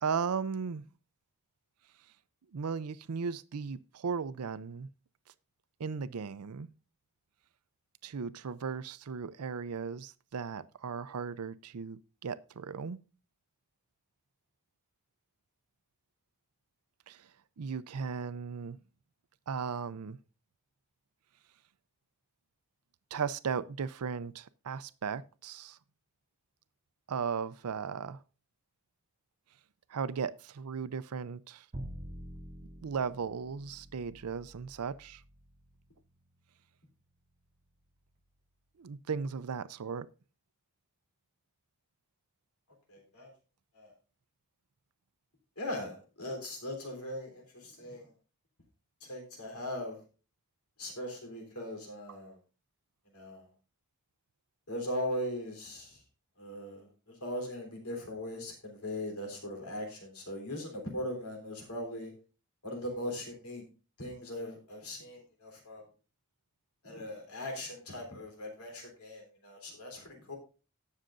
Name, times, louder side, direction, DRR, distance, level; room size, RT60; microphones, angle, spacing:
voice 1, 0.0-0.8 2.5-4.9 5.8-6.7 8.0-13.0 17.1-17.3 17.6-18.8 19.5-20.2 23.1-25.8 27.1-28.2 29.9-31.7 32.8-35.2 38.8-40.1, right 6 dB, 85° right, 0.5 m, -36 dB
Bowed string instrument, 31.7-37.9, right 1 dB, 30° right, 0.8 m, -48 dB
voice 2, 42.9-43.3 43.7-43.9 45.6-48.1 49.0-50.0 50.8-52.4 53.1-53.5 54.7-56.0 56.4-62.1 62.6-63.6 64.0-65.8 66.8-70.4, left 1 dB, 85° left, 3.5 m, -39 dB
19.0 x 6.5 x 2.5 m
head